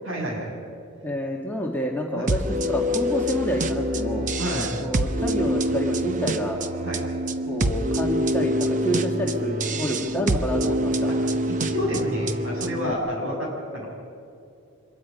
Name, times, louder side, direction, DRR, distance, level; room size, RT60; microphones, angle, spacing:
voice 1, 0.0-0.5 2.1-2.3 4.4-4.8 6.8-7.1 11.1-13.9, equal, 65° right, -2 dB, 7.2 m, -30 dB
voice 2, 1.0-4.3 4.8-6.6 7.5-11.1 12.8-13.0, equal, 10° left, -1 dB, 1.9 m, -28 dB
sound 1, 2.3-12.9, equal, 35° right, 0.7 m, -26 dB
25.0 x 21.5 x 5.4 m, 2.5 s
head